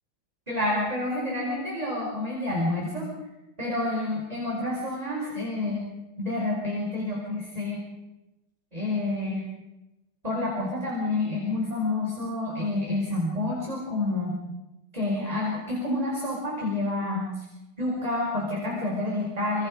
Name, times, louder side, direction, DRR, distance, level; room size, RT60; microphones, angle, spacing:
voice 1, 0.5-3.0 3.6-5.8 6.2-7.8 8.7-9.4 10.2-14.3 14.9-17.4 17.8-19.7, left 2 dB, 10° right, -3 dB, 4.8 m, -28 dB
28.0 x 24.5 x 5.0 m, 0.99 s
omnidirectional pair, 3.4 m